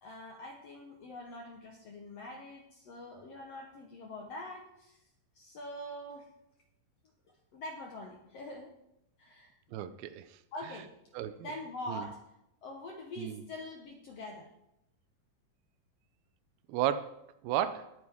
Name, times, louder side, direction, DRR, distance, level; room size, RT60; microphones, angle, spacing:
voice 1, 0.0-5.0 5.3-6.3 7.5-8.7 9.2-9.5 10.5-10.9 11.4-12.2 12.6-14.5, left 1 dB, 65° left, 1.6 m, -44 dB
voice 2, 9.7-10.4 11.1-11.5 11.9-12.1 13.2-13.4 16.7-17.9, right 11 dB, 85° right, 2.6 m, -34 dB
19.5 x 9.2 x 3.6 m
omnidirectional pair, 4.3 m